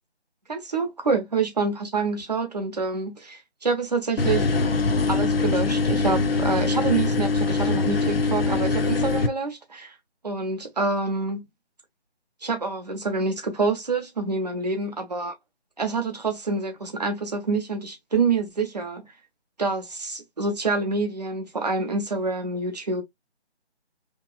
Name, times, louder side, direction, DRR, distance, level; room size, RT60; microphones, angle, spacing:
voice 1, 0.5-4.5 5.1-9.9 10.2-11.4 12.4-15.3 15.8-19.0 19.6-23.0, right 4 dB, 40° right, 0.7 m, -27 dB
sound 1, 4.2-9.3, left 3 dB, 60° left, 0.5 m, -23 dB
2.9 x 2.3 x 2.2 m
figure-of-eight pair, 160°, 33 cm